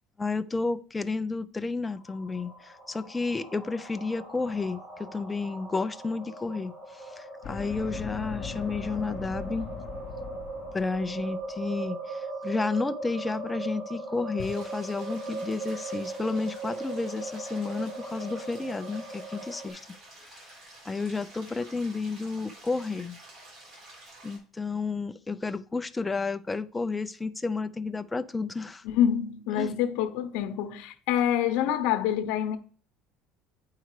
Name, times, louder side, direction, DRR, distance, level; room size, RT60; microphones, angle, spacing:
voice 1, 0.2-9.7 10.7-19.8 20.2-20.5 20.8-23.2 24.2-28.8 29.5-29.8, left 3 dB, 10° left, 0.4 m, -31 dB
sound 1, 1.9-19.7, right 2 dB, 75° right, 3.4 m, -39 dB
sound 2, 7.4-11.3, left 7 dB, 40° left, 0.8 m, -39 dB
sound 3, 14.4-24.4, right 2 dB, 50° right, 4.4 m, -50 dB
voice 2, 28.8-32.6, left 10 dB, 75° left, 0.9 m, -26 dB
8.9 x 4.7 x 4.8 m
cardioid pair, 155°, 0 cm